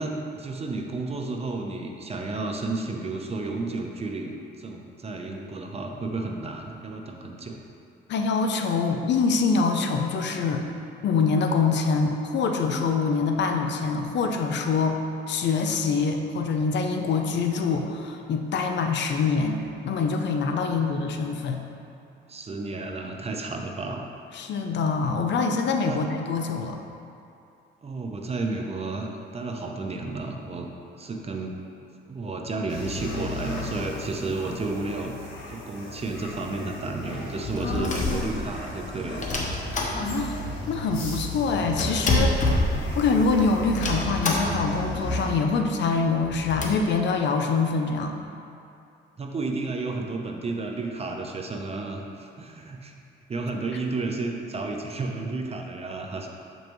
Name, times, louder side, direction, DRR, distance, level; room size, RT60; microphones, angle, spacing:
voice 1, 0.0-7.6 20.6-21.0 22.3-24.1 25.9-26.1 27.8-30.7 31.0-31.6 32.1-39.2 39.8-40.2 49.2-52.9 53.3-56.3, right 3 dB, 30° right, 2 dB, 0.7 m, -32 dB
voice 2, 8.1-10.6 11.0-15.0 15.3-21.6 24.3-26.8 37.6-38.3 39.9-40.4 40.7-42.7 42.9-48.2, left 4 dB, 65° left, 4 dB, 0.6 m, -25 dB
sound 1, 32.7-45.2, left 1 dB, 80° left, 1.4 m, -35 dB
sound 2, 37.3-38.7 39.2-40.5 40.7-40.8 41.0-43.3 43.7-44.8 45.1-45.2 45.4-45.6 46.1-46.7, left 2 dB, 40° left, 1.0 m, -27 dB
7.4 x 5.4 x 3.1 m, 2.6 s
cardioid pair, 90°, 20 cm